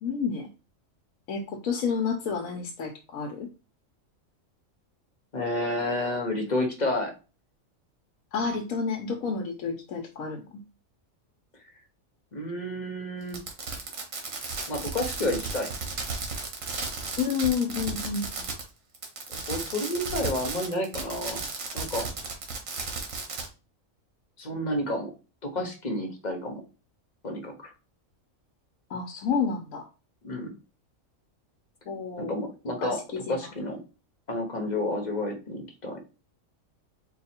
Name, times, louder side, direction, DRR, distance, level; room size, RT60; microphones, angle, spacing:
voice 1, 0.0-0.5 1.3-3.5 8.3-10.4 17.2-18.5 28.9-29.9 31.9-32.3 32.8-33.4, left 6 dB, 85° left, 3 dB, 1.2 m, -30 dB
voice 2, 5.3-7.1 12.3-13.4 14.7-15.7 19.3-21.4 21.7-22.1 24.4-25.1 25.4-26.6 27.2-27.7 30.2-30.5 32.2-33.0 33.3-33.8 34.3-36.0, left 1 dB, 35° left, 3 dB, 1.0 m, -30 dB
Fireworks, 13.3-18.7 18.9-23.5, right 4 dB, 75° right, 1.5 m, -34 dB
4.6 x 2.4 x 4.2 m, 0.31 s
omnidirectional pair, 1.4 m